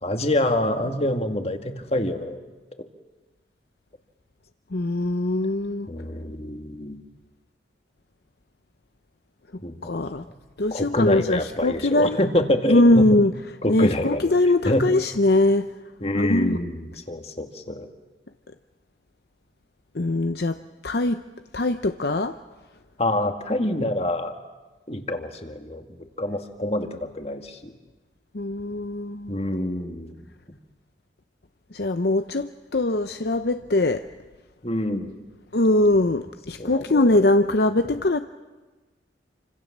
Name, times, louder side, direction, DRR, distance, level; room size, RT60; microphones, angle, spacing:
voice 1, 0.0-2.4 5.9-7.0 9.6-9.9 10.3-10.4 10.7-13.1 13.6-14.3 14.6-14.9 16.0-17.9 23.0-24.3 24.9-25.9 26.2-27.7 29.3-30.2 34.6-35.1 36.6-37.3, left 1 dB, 35° left, 6 dB, 2.1 m, -26 dB
voice 2, 4.7-5.9 9.8-10.2 10.6-12.2 12.7-13.3 13.7-15.7 16.1-16.6 19.9-20.6 20.8-21.2 21.5-22.3 28.3-29.4 31.7-34.0 35.5-38.2, left 2 dB, 55° left, 9 dB, 0.8 m, -21 dB
28.5 x 26.0 x 7.4 m, 1.2 s
head